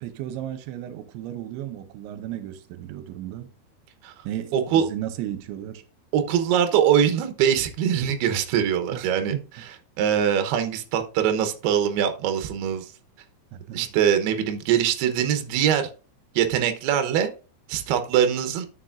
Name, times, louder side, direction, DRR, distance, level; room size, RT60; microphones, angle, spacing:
voice 1, 0.0-3.5 4.3-5.8 8.9-9.4 13.5-13.9, right 12 dB, 90° right, 3.0 m, -34 dB
voice 2, 4.5-4.9 6.1-9.3 10.0-12.9 13.7-15.9 16.4-17.3 17.7-18.7, right 9 dB, 70° right, 2.7 m, -22 dB
11.5 x 6.5 x 2.5 m
omnidirectional pair, 5.3 m